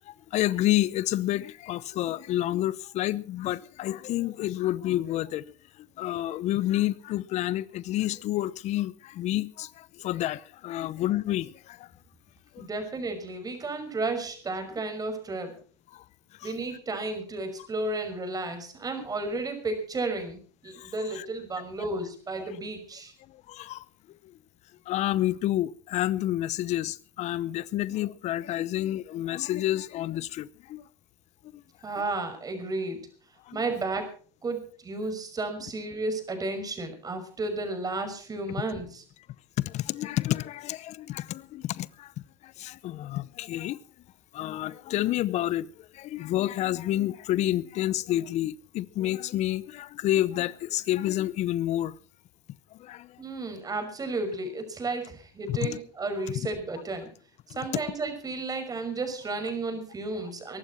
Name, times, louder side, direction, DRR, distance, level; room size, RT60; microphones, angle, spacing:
voice 1, 0.1-5.5 6.0-11.9 12.5-12.7 15.9-16.0 16.4-16.5 20.8-21.3 23.5-23.8 24.9-30.8 31.5-31.6 33.5-33.6 39.6-42.1 42.4-43.8 44.3-45.7 45.9-51.9 52.8-53.2 55.5-55.8, left 14 dB, 55° left, 0.8 m, -29 dB
voice 2, 12.6-15.5 16.4-23.1 31.8-33.0 33.5-34.1 34.4-39.0 53.2-57.1 57.6-60.6, right 2 dB, 25° right, 5.7 m, -33 dB
22.5 x 12.0 x 4.4 m
supercardioid pair, 90°, 14 cm